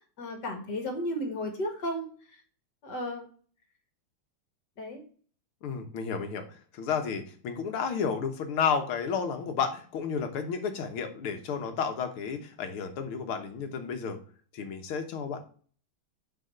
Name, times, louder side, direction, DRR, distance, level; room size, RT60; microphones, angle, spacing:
voice 1, 0.2-2.4 2.8-3.3 4.8-5.0, equal, 55° left, 4 dB, 2.4 m, -34 dB
voice 2, 5.6-14.2 14.5-15.4, left 6 dB, 80° left, 6 dB, 2.1 m, -32 dB
6.5 x 5.6 x 5.6 m, 0.43 s
omnidirectional pair, 2.3 m